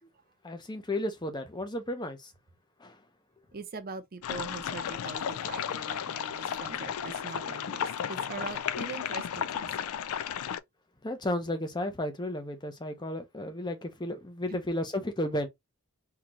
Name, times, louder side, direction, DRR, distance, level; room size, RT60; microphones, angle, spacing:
voice 1, 0.4-2.3 2.8-3.0 11.0-15.5, left 1 dB, 20° left, 0.6 m, -33 dB
voice 2, 3.5-9.9 14.5-14.6, right 4 dB, 40° right, 0.6 m, -42 dB
sound 1, 4.2-10.6, left 8 dB, 75° left, 0.3 m, -34 dB
3.8 x 2.8 x 3.0 m
head